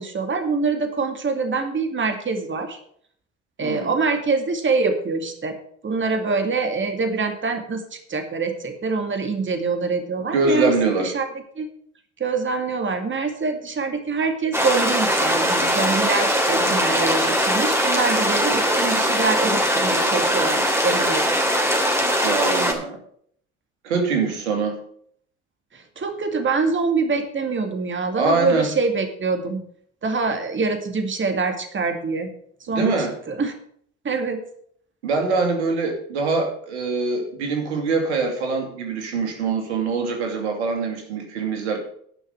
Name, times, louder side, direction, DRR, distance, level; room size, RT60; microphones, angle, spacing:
voice 1, 0.0-2.8 3.6-5.6 5.8-11.3 11.6-11.7 12.2-21.3 25.7-29.6 30.0-32.3 32.6-32.9 33.3-33.5 34.0-34.4, right 4 dB, 35° right, 6 dB, 2.2 m, -25 dB
voice 2, 10.3-11.1 22.2-23.0 23.8-24.8 28.2-28.7 32.7-33.1 35.0-41.8, right 4 dB, 90° right, 3 dB, 2.5 m, -23 dB
sound 1, 14.5-22.7, equal, 10° right, 2.9 m, -21 dB
11.0 x 5.7 x 7.7 m, 0.64 s
hypercardioid pair, 65°, 33 cm